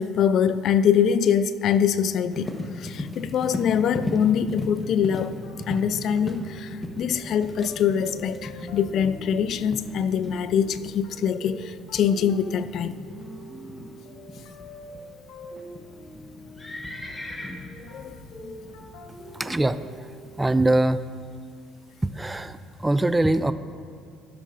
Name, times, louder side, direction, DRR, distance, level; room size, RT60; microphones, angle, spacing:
voice 1, 0.0-2.5 2.8-5.4 5.7-13.0 17.8-18.5, left 8 dB, 60° left, 13 dB, 0.4 m, -24 dB
Livestock farm animals working animals, 2.3-20.8, left 1 dB, 15° left, 1.0 m, -38 dB
sound 1, 5.4-20.8, right 1 dB, 80° left, 1.8 m, -46 dB
voice 2, 19.3-20.1 20.4-21.0 22.0-23.5, right 2 dB, 10° right, 12 dB, 0.3 m, -23 dB
15.5 x 6.6 x 2.5 m, 2.3 s
supercardioid pair, 95°, 0 cm